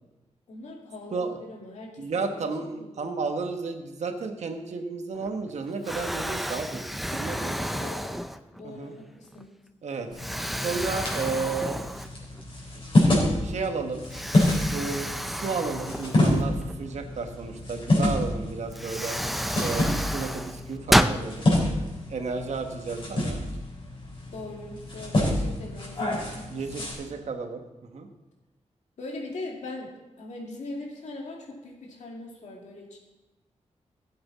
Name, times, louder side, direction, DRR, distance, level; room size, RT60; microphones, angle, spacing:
voice 1, 0.5-3.3 7.3-8.2 8.5-9.5 24.3-26.9 29.0-33.0, left 2 dB, 85° left, -1 dB, 2.3 m, -41 dB
voice 2, 2.0-6.8 7.1-7.9 8.6-8.9 9.8-10.1 10.6-11.8 13.4-14.0 14.6-19.2 19.6-21.5 22.1-23.4 26.5-27.6 27.9-28.1, right 4 dB, 70° right, 5 dB, 1.2 m, -32 dB
Explosion, 5.1-5.5 5.8-8.7 9.3-9.4 10.2-12.4 12.8-12.9 14.1-16.7 18.2-18.3 18.7-21.2, equal, ahead, 0.4 m, -30 dB
sound 1, 10.1-26.9, left 1 dB, 45° left, 4.1 m, -28 dB
16.0 x 7.9 x 4.1 m, 1.1 s
wide cardioid pair, 135°, 12 cm